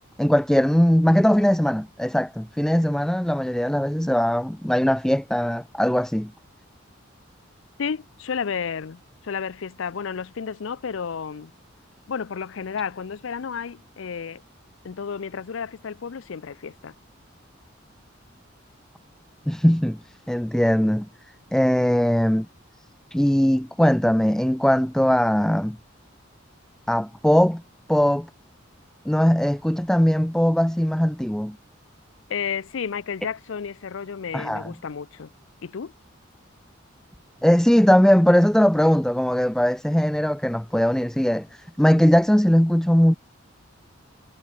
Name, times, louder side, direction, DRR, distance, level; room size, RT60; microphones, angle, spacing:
voice 1, 0.2-6.3 19.5-20.0 20.3-21.1 21.5-22.5 23.1-25.8 26.9-27.6 27.9-28.3 29.1-31.6 34.3-34.7 37.4-41.5 41.8-43.1, equal, 5° left, 0.3 m, -20 dB
voice 2, 7.8-11.5 12.1-14.4 14.8-16.9 32.3-35.3 35.6-35.9, left 6 dB, 75° left, 0.5 m, -32 dB
head